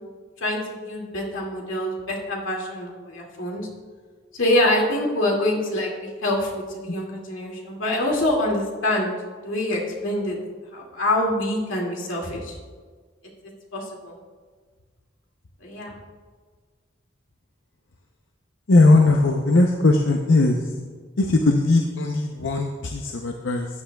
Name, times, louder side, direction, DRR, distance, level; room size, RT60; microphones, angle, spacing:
voice 1, 0.4-3.7 4.3-9.1 9.4-10.4 10.7-12.5 13.7-14.1 15.6-15.9, left 1 dB, 90° left, -1 dB, 2.3 m, -25 dB
voice 2, 18.7-20.6 21.2-23.7, left 2 dB, 70° left, 3 dB, 0.6 m, -19 dB
14.5 x 9.7 x 2.3 m, 1.5 s
head